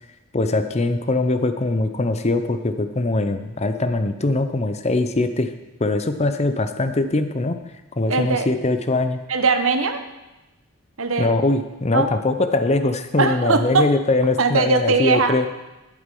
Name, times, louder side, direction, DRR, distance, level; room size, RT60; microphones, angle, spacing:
voice 1, 0.3-5.5 5.8-7.6 8.0-9.2 11.2-15.5, left 2 dB, 30° left, 9 dB, 0.7 m, -22 dB
voice 2, 8.1-8.5 9.3-10.0 11.0-11.4 11.9-12.1 13.2-13.9 14.4-15.3, right 4 dB, 70° right, 8 dB, 1.0 m, -20 dB
11.5 x 8.6 x 5.5 m, 1.0 s
head